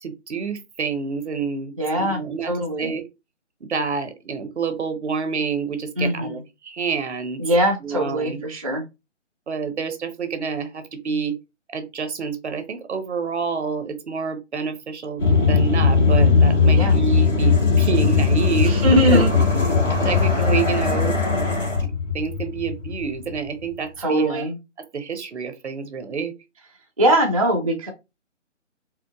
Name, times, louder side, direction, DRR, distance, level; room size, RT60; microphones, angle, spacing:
voice 1, 0.0-2.5 2.8-3.1 3.6-7.4 7.8-8.4 9.5-11.4 11.7-15.2 15.5-19.2 20.0-21.2 21.5-24.5 24.9-26.3, right 5 dB, 65° right, 0.8 m, -28 dB
voice 2, 1.8-2.9 6.0-6.4 7.4-8.8 16.7-17.0 18.7-19.3 24.0-24.6 27.0-27.9, right 1 dB, 30° right, 0.4 m, -21 dB
sound 1, 15.2-23.3, left 4 dB, 90° left, 2.0 m, -18 dB
4.4 x 2.1 x 2.3 m
figure-of-eight pair, 145°, 37 cm